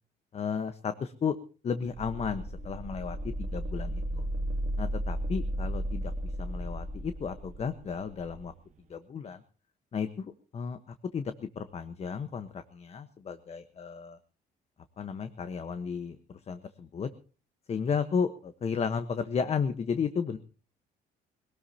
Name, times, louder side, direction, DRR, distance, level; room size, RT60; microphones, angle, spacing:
voice 1, 0.3-1.4 1.6-4.2 4.8-8.5 8.9-9.4 9.9-10.8 11.1-14.2 15.0-16.2 16.5-17.1 17.7-20.4, left 6 dB, 40° left, 10 dB, 1.2 m, -33 dB
sound 1, 1.8-8.5, right 1 dB, 45° right, 1.5 m, -34 dB
21.5 x 18.0 x 2.9 m, 0.38 s
cardioid pair, 110°, 17 cm